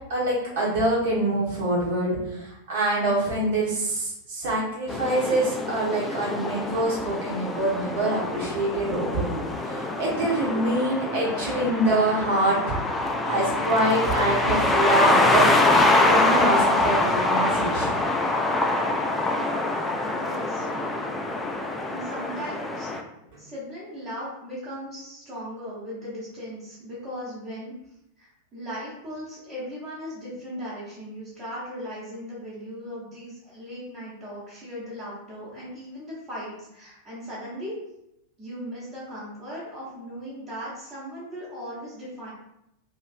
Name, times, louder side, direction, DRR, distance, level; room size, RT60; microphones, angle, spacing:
voice 1, 0.1-12.7 13.2-15.5 16.0-17.9, right 1 dB, 55° right, -5 dB, 1.2 m, -25 dB
sound 1, 4.9-23.0, left 2 dB, 10° left, 0.3 m, -24 dB
voice 2, 20.0-20.7 21.9-22.9 23.4-27.7 28.2-37.8 38.4-42.3, equal, 25° right, -9 dB, 1.0 m, -38 dB
3.0 x 2.6 x 2.4 m, 0.85 s
figure-of-eight pair, 90°, 0 cm